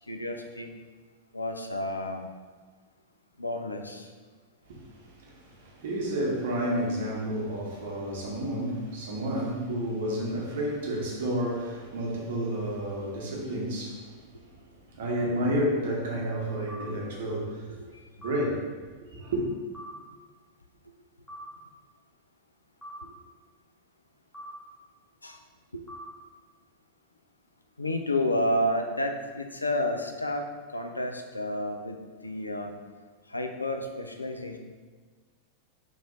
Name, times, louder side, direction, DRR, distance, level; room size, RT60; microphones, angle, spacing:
voice 1, 0.1-0.7 1.3-2.3 3.4-4.1 17.9-18.0 23.0-23.1 25.2-25.4 27.8-30.5 30.7-32.0 32.2-32.7 33.3-34.6, left 1 dB, 80° left, 0.3 m, -30 dB
voice 2, 4.7-17.7 18.2-18.7 19.1-19.4, equal, 55° right, 0.8 m, -31 dB
sound 1, 16.7-16.9 18.2-18.4 19.7-19.9 21.3-21.5 22.8-23.0 24.3-24.5 25.9-26.1, equal, 5° left, 1.0 m, -42 dB
3.1 x 2.5 x 3.8 m
figure-of-eight pair, 90°, 0 cm